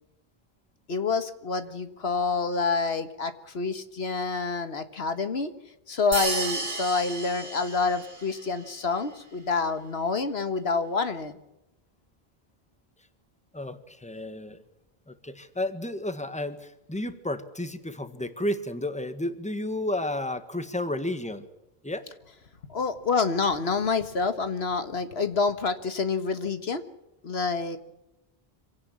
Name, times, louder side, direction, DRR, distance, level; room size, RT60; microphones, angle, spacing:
voice 1, 0.9-5.5 5.9-11.3 22.7-26.9 27.2-27.8, left 4 dB, 85° left, 10 dB, 1.8 m, -27 dB
sound 1, 6.1-8.4, right 2 dB, 70° right, 2.6 m, -32 dB
voice 2, 13.5-14.6 15.1-21.4 21.8-22.0, left 1 dB, 5° left, 10 dB, 1.6 m, -32 dB
26.0 x 17.0 x 7.3 m, 0.92 s
omnidirectional pair, 1.0 m